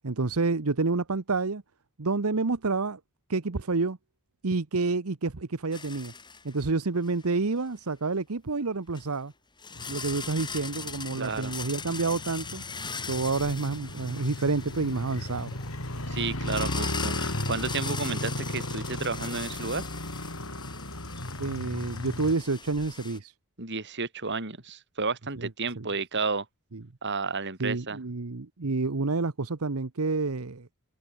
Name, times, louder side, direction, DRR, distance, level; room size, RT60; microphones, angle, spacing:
voice 1, 0.0-1.6 2.0-3.0 3.3-4.0 4.4-6.1 6.4-9.3 9.9-12.6 13.1-15.5 21.4-23.3 25.4-25.5 25.8-25.9 26.7-26.8 27.6-30.7, right 3 dB, 80° right, 1.0 m, -29 dB
sound 1, 5.7-6.7 7.1-7.2 8.9-9.0 9.6-23.2, left 5 dB, 20° left, 3.8 m, -40 dB
Motorcycle, 9.8-22.3, left 1 dB, 70° left, 7.0 m, -36 dB
voice 2, 11.2-11.5 16.1-19.8 23.6-26.5 27.0-28.0, right 4 dB, 55° right, 3.4 m, -32 dB
head